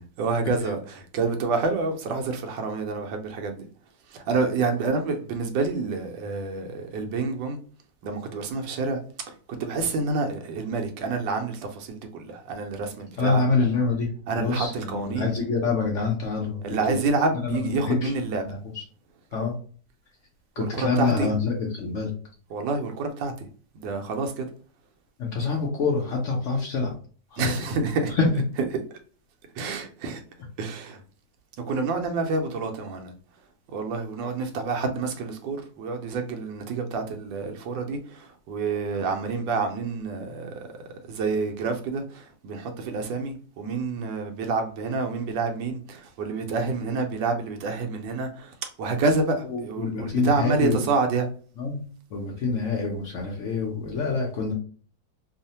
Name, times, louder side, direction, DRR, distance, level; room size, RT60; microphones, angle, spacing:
voice 1, 0.0-3.6 4.1-7.6 8.0-9.0 9.5-13.5 14.3-15.3 16.6-18.4 20.6-21.3 22.5-23.5 23.7-24.5 27.4-28.2 29.6-30.2 30.6-31.0 31.7-33.1 33.7-40.6 41.1-51.3, right 4 dB, 80° right, 1.2 m, -28 dB
voice 2, 13.2-14.1 14.4-17.0 17.4-18.8 19.3-19.5 20.6-22.1 25.2-26.9 27.3-27.5 28.1-28.3 49.5-50.9 51.6-51.8 52.1-54.5, left 4 dB, 80° left, 0.6 m, -26 dB
3.1 x 2.0 x 2.7 m
omnidirectional pair, 2.0 m